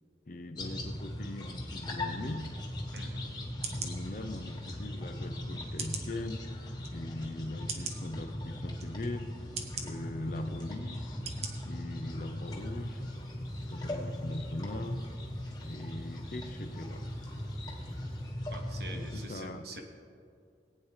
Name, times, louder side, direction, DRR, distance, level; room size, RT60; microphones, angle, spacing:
voice 1, 0.3-2.6 3.7-6.5 6.9-9.4 9.8-11.2 11.6-13.0 13.7-15.1 15.6-17.1 18.9-19.6, left 2 dB, 45° left, 7 dB, 0.6 m, -40 dB
sound 1, 0.6-19.3, left 1 dB, 25° left, 1.2 m, -39 dB
sound 2, 2.9-3.1 3.6-3.9 4.7-4.8 5.8-6.1 6.8-6.9 7.7-8.0 8.8-8.9 9.6-9.9 10.6-10.7 11.3-11.5 11.9-12.0, right 5 dB, 35° right, 0.9 m, -38 dB
voice 2, 2.9-3.3 18.5-19.8, right 2 dB, 65° right, 3 dB, 1.3 m, -45 dB
Insect, 12.4-18.3, left 4 dB, ahead, 1.8 m, -59 dB
18.5 x 8.9 x 3.2 m, 2.4 s
head